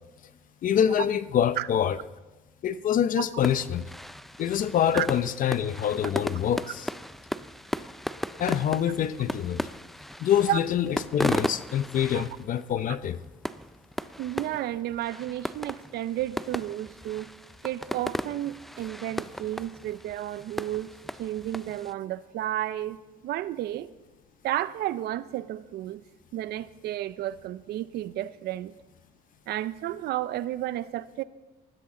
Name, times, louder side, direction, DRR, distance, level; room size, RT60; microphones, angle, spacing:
voice 1, 0.6-2.0 2.6-3.9 4.4-6.9 8.4-9.6 10.2-13.2, left 9 dB, 55° left, 14 dB, 0.8 m, -25 dB
sound 1, 3.4-21.9, equal, ahead, 0.4 m, -36 dB
voice 2, 14.2-17.3 17.6-23.9 24.4-26.0 26.3-28.7 29.5-31.2, right 13 dB, 75° right, 15 dB, 0.7 m, -32 dB
19.5 x 14.5 x 3.9 m, 1.1 s
cardioid pair, 110°, 17 cm